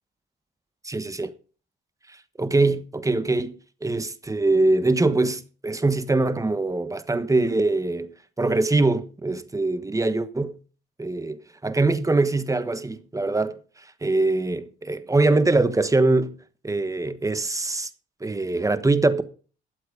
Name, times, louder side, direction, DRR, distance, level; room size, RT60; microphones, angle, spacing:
voice 1, 0.8-1.3 2.1-3.5 3.8-8.1 8.4-10.5 11.0-13.6 14.0-16.4 16.6-17.9 18.2-19.2, right 2 dB, 15° right, 1.2 m, -23 dB
12.5 x 7.9 x 5.0 m
cardioid pair, 90°, 20 cm